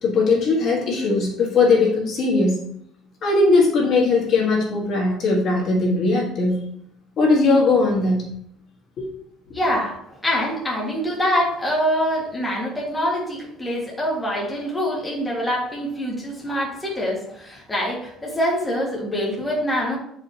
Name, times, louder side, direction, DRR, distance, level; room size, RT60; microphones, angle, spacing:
voice 1, 0.0-2.6 3.2-6.6 7.2-8.3 9.0-9.1, left 3 dB, 45° left, -2 dB, 1.7 m, -19 dB
voice 2, 9.5-20.0, equal, 10° left, -4 dB, 1.9 m, -25 dB
8.9 x 5.0 x 2.9 m, 0.71 s
cardioid pair, 145°, 0 cm